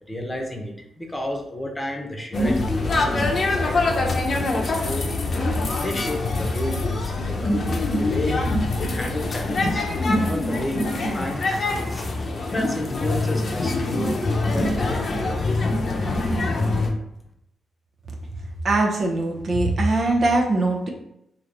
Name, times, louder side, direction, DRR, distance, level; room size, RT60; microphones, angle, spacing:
voice 1, 0.1-5.1 5.8-7.7 8.0-8.4 8.7-9.9 10.1-14.1 14.5-15.2, left 1 dB, 20° left, 1 dB, 0.9 m, -32 dB
sound 1, 2.3-16.9, left 2 dB, 55° left, 0.7 m, -24 dB
voice 2, 18.6-20.9, right 2 dB, 55° right, 1 dB, 0.8 m, -21 dB
3.1 x 2.9 x 3.9 m, 0.78 s
supercardioid pair, 60°, 0 cm